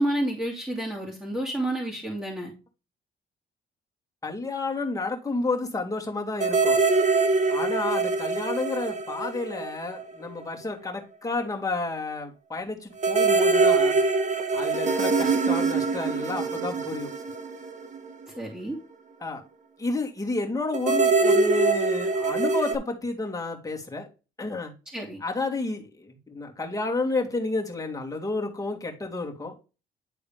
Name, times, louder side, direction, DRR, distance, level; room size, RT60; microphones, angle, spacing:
voice 1, 0.0-2.5 18.4-18.8 24.9-25.2, right 1 dB, 5° right, -4 dB, 2.4 m, -29 dB
voice 2, 4.2-6.8 7.5-13.9 14.5-17.1 19.2-19.4 19.8-24.1 24.4-24.7 25.2-29.5, left 3 dB, 15° left, 0 dB, 2.3 m, -31 dB
sound 1, 6.4-10.2 10.4-10.5 13.0-18.4 20.7-22.8, right 3 dB, 40° right, 1.1 m, -24 dB
10.5 x 3.8 x 3.4 m, 0.31 s
cardioid pair, 90°, 20 cm